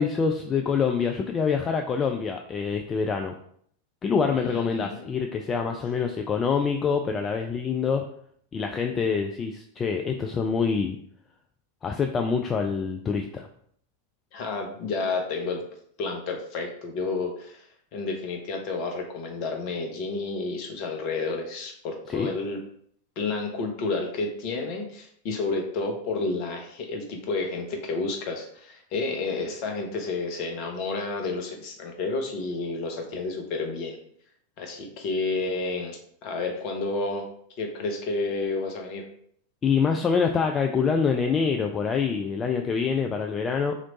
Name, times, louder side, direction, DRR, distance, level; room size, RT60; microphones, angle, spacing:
voice 1, 0.0-3.3 4.0-8.1 8.5-11.0 11.8-13.5 22.1-22.3 39.6-43.7, left 5 dB, 20° left, 4 dB, 0.3 m, -25 dB
voice 2, 4.3-5.1 14.3-15.6 16.0-22.6 23.2-34.0 34.6-37.3 37.6-39.1, left 3 dB, 45° left, 3 dB, 0.9 m, -30 dB
3.1 x 3.0 x 3.9 m, 0.64 s
figure-of-eight pair, 90°, 0 cm